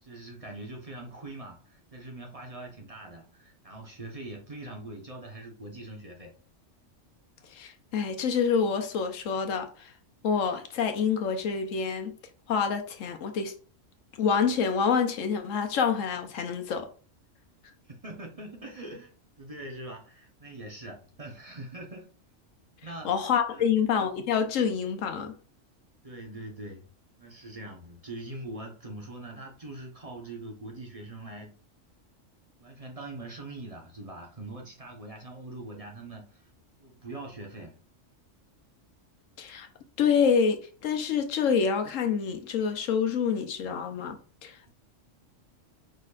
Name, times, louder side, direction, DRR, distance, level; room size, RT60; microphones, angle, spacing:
voice 1, 0.0-6.4 17.9-19.1 19.4-22.1 22.8-23.1 23.5-23.7 26.0-26.9 27.2-31.5 32.6-36.5 36.8-37.8, right 2 dB, 30° right, 0.9 m, -42 dB
voice 2, 7.5-9.9 10.2-12.1 12.5-13.5 14.2-16.9 23.0-25.3 39.4-39.7 40.0-44.7, left 6 dB, 85° left, 1.1 m, -27 dB
5.0 x 4.3 x 2.4 m
omnidirectional pair, 1.3 m